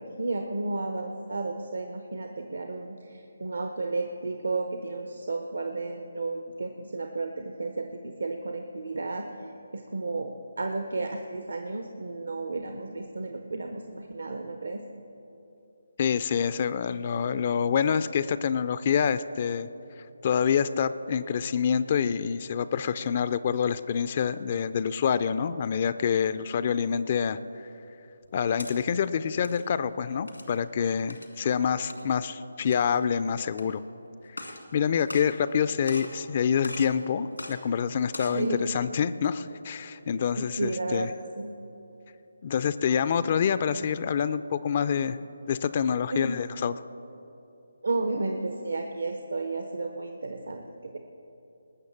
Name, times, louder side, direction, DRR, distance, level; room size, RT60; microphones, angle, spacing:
voice 1, 0.0-9.3 9.7-14.8 38.3-38.7 40.4-41.1 41.3-41.6 46.1-46.4 47.8-51.0, right 2 dB, 70° right, 5 dB, 0.9 m, -32 dB
voice 2, 16.0-19.7 20.2-27.4 28.3-33.8 34.5-38.5 38.7-41.1 42.4-45.2 45.5-46.7, left 7 dB, 35° left, 14 dB, 0.4 m, -27 dB
sound 1, 28.2-28.7 29.3-29.6 30.3-30.6 31.1-31.3 31.9-32.0 32.6-33.0 33.5-33.6 34.3-34.6 35.0-35.6 35.9-36.2 36.6-36.9 37.4-37.5 38.0-38.4, left 2 dB, 90° left, 2.0 m, -40 dB
19.5 x 6.6 x 7.2 m, 2.9 s
figure-of-eight pair, 150°, 0 cm